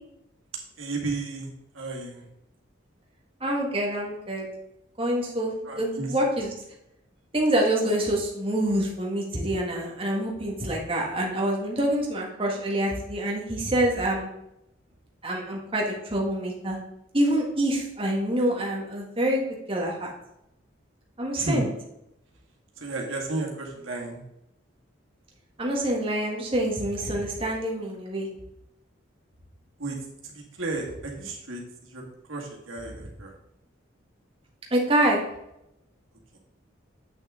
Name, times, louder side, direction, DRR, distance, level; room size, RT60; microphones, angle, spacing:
voice 1, 0.8-2.3 5.6-6.1 21.3-21.6 22.8-24.2 29.8-30.0 30.2-32.0 32.3-33.3 36.3-36.4, right 3 dB, 85° right, -1 dB, 2.0 m, -33 dB
voice 2, 3.4-4.4 5.0-6.5 7.3-14.3 15.2-16.8 17.1-19.4 19.7-20.1 21.2-21.7 25.6-28.3 34.7-35.2, right 1 dB, 25° right, -2 dB, 1.6 m, -26 dB
8.4 x 6.2 x 3.7 m, 0.84 s
head